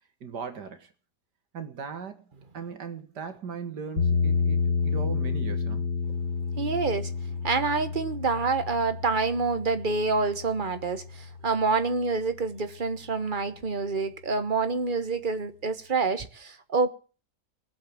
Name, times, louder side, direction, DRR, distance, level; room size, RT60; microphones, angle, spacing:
voice 1, 0.2-0.9 1.5-2.3 2.5-5.9, right 6 dB, 85° right, 2.5 m, -38 dB
sound 1, 4.0-12.1, left 5 dB, 75° left, 2.5 m, -30 dB
voice 2, 6.6-7.1 7.4-17.0, right 4 dB, 30° right, 1.4 m, -27 dB
20.0 x 8.0 x 8.6 m
omnidirectional pair, 1.7 m